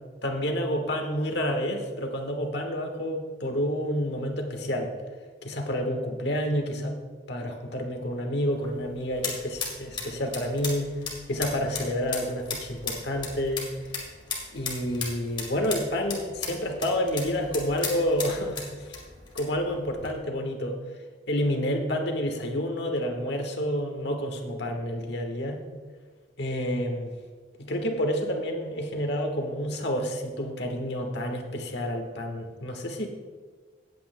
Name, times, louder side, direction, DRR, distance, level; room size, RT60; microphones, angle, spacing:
voice 1, 0.2-4.9 5.4-7.0 7.3-10.9 11.3-13.7 14.5-18.6 19.3-20.8 21.3-25.6 26.4-27.1 27.6-33.1, equal, 60° left, 3 dB, 1.4 m, -29 dB
sound 1, 8.5-20.1, left 4 dB, 25° left, 2.0 m, -37 dB
17.5 x 8.6 x 2.2 m, 1.5 s
head